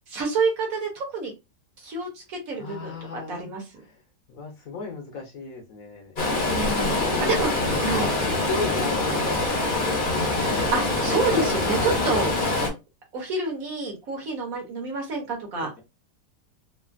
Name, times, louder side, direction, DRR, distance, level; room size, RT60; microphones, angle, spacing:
voice 1, 0.1-1.3 1.8-3.6 6.4-7.5 7.8-8.1 10.2-12.4 13.1-15.7, right 3 dB, 60° right, 0 dB, 1.2 m, -28 dB
voice 2, 2.5-3.5 3.8-4.0 4.3-6.1 6.8-7.4 8.0-10.0 11.7-11.9, left 4 dB, 65° left, 2 dB, 1.0 m, -36 dB
Stream, 6.2-12.7, left 2 dB, 40° left, 0.7 m, -24 dB
3.1 x 2.4 x 2.4 m, 0.25 s
omnidirectional pair, 1.8 m